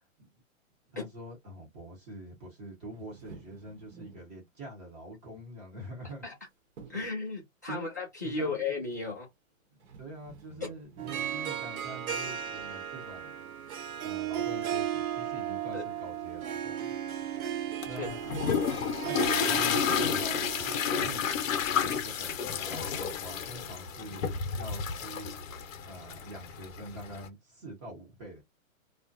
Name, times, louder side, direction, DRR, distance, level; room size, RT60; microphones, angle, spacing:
voice 1, 0.9-6.2 7.7-7.9 8.2-8.6 9.7-13.3 14.0-16.9 17.9-18.2 18.7-24.2 24.5-25.3 25.9-28.4, right 1 dB, 20° right, 0.9 m, -45 dB
sound 1, 2.9-4.4 5.8-6.4 6.8-7.3 9.3-9.4 9.8-11.5 12.3-12.6, right 5 dB, 55° right, 0.9 m, -52 dB
voice 2, 6.9-9.3 10.6-10.7 15.7-15.8 17.8-18.1, left 4 dB, 15° left, 0.3 m, -35 dB
Harp, 11.0-21.3, right 10 dB, 90° right, 0.7 m, -35 dB
sound 2, 17.8-27.3, left 7 dB, 70° left, 0.7 m, -31 dB
2.3 x 2.1 x 2.6 m
hypercardioid pair, 155°, 41 cm